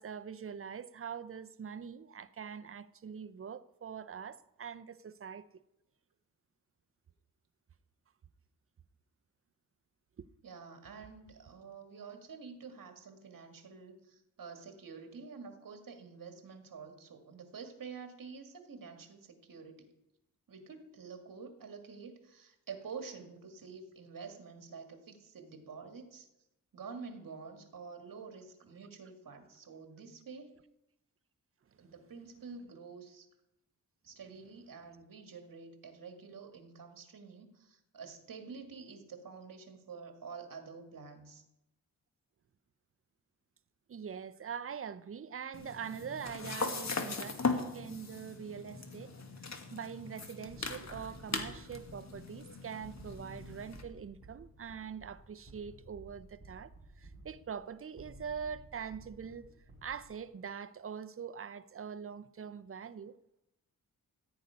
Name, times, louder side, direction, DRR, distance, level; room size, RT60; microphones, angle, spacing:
voice 1, 0.0-5.4 10.2-10.3 43.9-49.1 49.7-56.7 57.0-59.5 59.8-63.2, right 7 dB, 40° right, 0.5 m, -43 dB
voice 2, 10.4-19.9 20.5-26.3 26.7-30.6 31.8-33.3 34.0-41.4, right 5 dB, 70° right, 1.9 m, -48 dB
sound 1, 45.5-53.8, left 4 dB, 50° left, 1.6 m, -39 dB
sound 2, 50.5-60.4, right 2 dB, 20° right, 4.4 m, -55 dB
14.5 x 5.3 x 9.5 m
wide cardioid pair, 125°, 35 cm